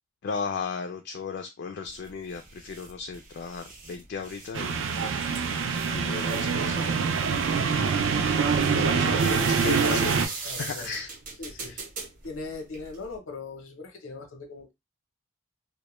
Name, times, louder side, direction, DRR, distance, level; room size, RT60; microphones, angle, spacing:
voice 1, 0.2-4.8 5.9-7.0 8.7-11.1 11.6-11.8, left 5 dB, 55° left, 4 dB, 0.3 m, -35 dB
sound 1, 1.8-13.2, right 4 dB, 40° right, 0.7 m, -41 dB
sound 2, 4.5-10.3, right 5 dB, 70° right, 0.4 m, -25 dB
voice 2, 10.4-11.0 11.4-11.8 12.2-14.7, left 3 dB, 85° left, 5 dB, 0.7 m, -40 dB
2.1 x 2.1 x 3.0 m, 0.22 s
head